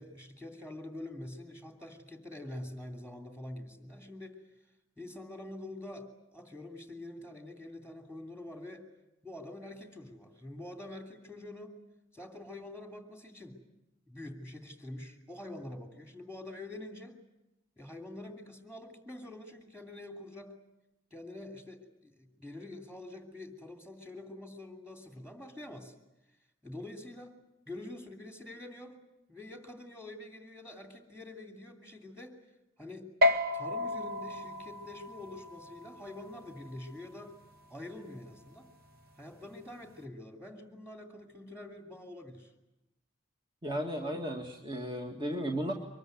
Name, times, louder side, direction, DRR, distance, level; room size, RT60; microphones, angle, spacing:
voice 1, 0.0-4.4 5.0-8.8 9.2-11.8 12.1-13.6 14.1-17.2 17.8-20.5 21.1-25.9 26.6-27.3 27.7-29.0 29.3-32.3 32.8-33.1 33.5-37.3 37.7-38.7 39.2-42.5, left 1 dB, 5° right, 4 dB, 2.9 m, -46 dB
sound 1, 33.2-40.0, left 2 dB, 50° right, 2.0 m, -34 dB
voice 2, 43.6-45.7, equal, 25° right, 2 dB, 2.1 m, -34 dB
24.5 x 21.5 x 9.3 m, 0.93 s
head